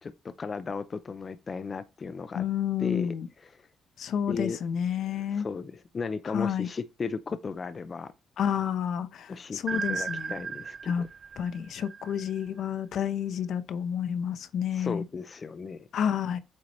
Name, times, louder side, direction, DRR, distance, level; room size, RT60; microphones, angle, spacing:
voice 1, 0.0-2.4 2.8-3.1 3.4-3.6 4.3-4.6 5.3-8.1 9.3-11.0 14.7-15.9, left 5 dB, 40° left, 0.5 m, -35 dB
voice 2, 2.3-3.3 4.0-5.5 6.2-6.7 8.4-10.3 10.8-11.1 11.4-15.0 15.9-16.4, left 8 dB, 70° left, 0.8 m, -30 dB
sound 1, 9.7-12.6, right 6 dB, 40° right, 0.3 m, -36 dB
8.4 x 4.6 x 3.1 m
cardioid pair, 90°, 0 cm